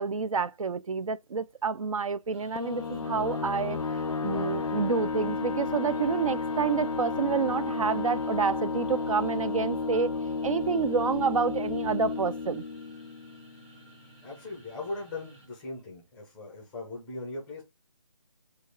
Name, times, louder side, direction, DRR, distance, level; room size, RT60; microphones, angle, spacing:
voice 1, 0.0-3.8 4.2-10.1 10.4-12.6, right 5 dB, 75° right, 0.4 m, -28 dB
sound 1, 2.3-15.5, right 2 dB, 10° right, 1.0 m, -56 dB
sound 2, 2.6-13.8, left 4 dB, 75° left, 0.4 m, -32 dB
sound 3, 5.6-11.0 11.3-11.6, right 2 dB, 35° right, 2.6 m, -52 dB
voice 2, 14.2-17.6, left 2 dB, 5° left, 0.5 m, -39 dB
5.1 x 2.4 x 4.4 m
figure-of-eight pair, 155°, 18 cm